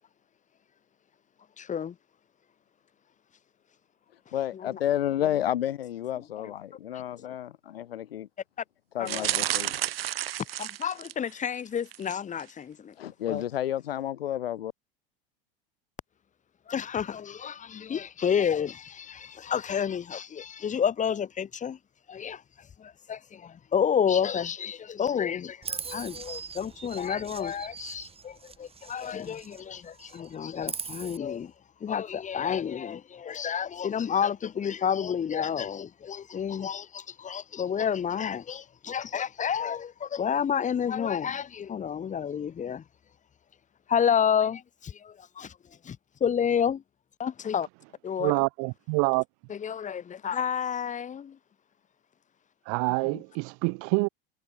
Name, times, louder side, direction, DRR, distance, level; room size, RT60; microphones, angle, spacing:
voice 1, 1.6-2.0 4.5-4.8 5.2-5.3 6.2-6.5 7.2-7.3 9.0-9.4 10.6-12.9 13.3-13.4 16.7-21.8 22.1-31.5 31.8-42.8 43.9-46.8 47.2-47.7 48.0-48.3 49.5-51.4 53.0-53.2, left 8 dB, 25° left, 2.8 m, -30 dB
voice 2, 4.3-8.3 8.9-9.7 13.0-14.7, left 11 dB, 90° left, 1.8 m, -31 dB
sound 1, 9.0-11.3 11.9-12.1 12.4-12.5, right 13 dB, 85° right, 1.2 m, -31 dB
Chirp tweet, 25.6-29.6 29.9-31.2, right 6 dB, 20° right, 3.9 m, -40 dB
voice 3, 48.2-49.2 52.7-54.1, right 40 dB or more, 55° right, 2.3 m, -26 dB
hypercardioid pair, 105°, 29 cm